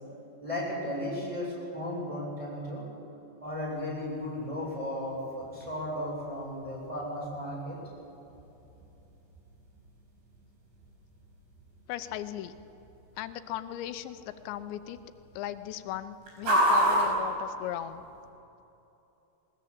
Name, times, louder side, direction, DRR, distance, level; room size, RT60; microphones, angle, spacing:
voice 1, 0.4-2.8 3.4-7.8, left 1 dB, 5° right, -5 dB, 7.3 m, -35 dB
sound 1, 3.4-18.3, equal, 85° right, 7.2 m, -35 dB
voice 2, 11.9-12.5 13.2-15.0 15.4-18.0, left 12 dB, 90° left, 11 dB, 3.0 m, -37 dB
21.0 x 20.0 x 8.6 m, 2.9 s
omnidirectional pair, 5.0 m